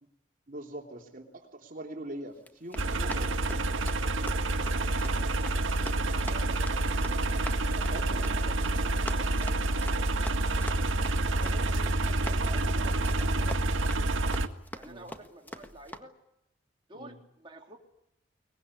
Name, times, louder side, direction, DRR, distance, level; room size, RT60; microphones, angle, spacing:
voice 1, 0.5-3.8 7.9-8.4 8.7-9.1 14.8-15.1 16.9-17.1, right 1 dB, 45° right, 3 dB, 3.3 m, -43 dB
Run, 2.4-16.0, left 1 dB, 10° left, 1.6 m, -46 dB
sound 1, 2.8-14.5, right 2 dB, 85° right, 1.7 m, -28 dB
voice 2, 6.1-6.8 7.6-9.6 10.1-13.9 14.7-16.1 16.9-17.8, right 1 dB, 25° right, 0 dB, 3.3 m, -50 dB
23.0 x 21.0 x 9.8 m, 0.79 s
head